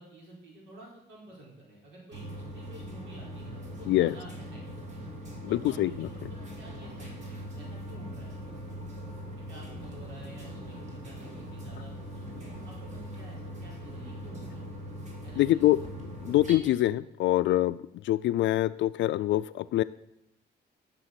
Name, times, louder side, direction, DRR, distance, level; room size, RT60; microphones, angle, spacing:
voice 1, 0.0-4.6 4.9-5.0 5.6-8.8 9.5-14.6 15.2-15.7, right 2 dB, 80° right, -3 dB, 4.5 m, -50 dB
sound 1, 2.1-16.6, equal, 40° right, 2.6 m, -41 dB
voice 2, 15.4-15.8 16.2-17.8 18.0-19.8, left 15 dB, 80° left, 13 dB, 0.4 m, -24 dB
12.5 x 6.3 x 5.9 m, 0.85 s
cardioid pair, 145°, 19 cm